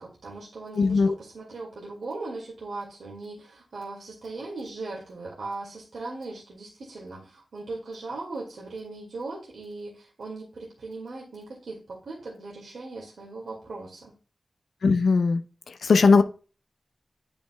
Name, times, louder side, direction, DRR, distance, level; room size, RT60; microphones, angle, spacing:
voice 1, 0.0-14.1, right 3 dB, 80° right, -3 dB, 2.1 m, -39 dB
voice 2, 0.8-1.1 14.8-15.4 15.8-16.2, left 4 dB, 90° left, 10 dB, 0.5 m, -19 dB
9.3 x 5.3 x 2.2 m, 0.36 s
wide cardioid pair, 100°, 0 cm